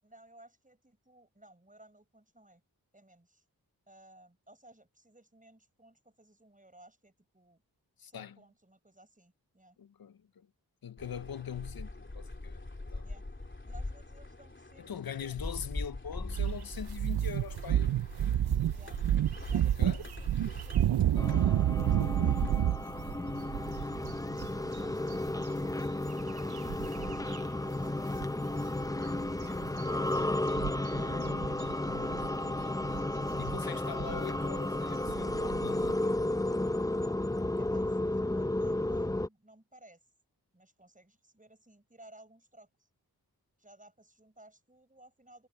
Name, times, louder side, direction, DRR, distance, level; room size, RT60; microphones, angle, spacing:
voice 1, 0.0-2.6 2.9-3.4 3.9-7.6 8.0-9.8 13.0-13.3 13.6-15.7 18.7-19.0 19.4-24.0 24.6-29.6 31.0-31.3 37.6-40.1 40.5-42.7 43.6-45.5, right 1 dB, 20° right, 5.7 m, -58 dB
voice 2, 8.0-8.4 9.8-10.5 10.8-12.6 12.9-13.1 14.8-18.0 19.6-20.0 30.9-33.0 33.4-36.2, left 8 dB, 70° left, 0.7 m, -43 dB
sound 1, 11.0-22.6, left 2 dB, 30° left, 3.0 m, -43 dB
sound 2, 16.3-27.4 27.7-27.8 28.1-35.9, right 11 dB, 80° right, 0.5 m, -31 dB
sound 3, 21.2-39.3, left 1 dB, 10° left, 0.6 m, -33 dB
cardioid pair, 50°, 38 cm